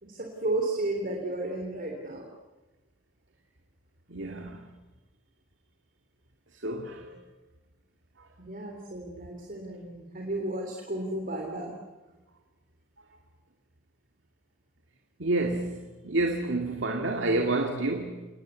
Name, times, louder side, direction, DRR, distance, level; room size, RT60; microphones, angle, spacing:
voice 1, 0.0-2.3 8.4-11.7 12.1-12.2, right 2 dB, 45° right, 3.5 m, -33 dB
voice 2, 4.1-4.7 6.5-7.2 8.2-8.3 15.2-18.3, right 2 dB, 65° right, 2.2 m, -29 dB
29.0 x 19.5 x 8.2 m
head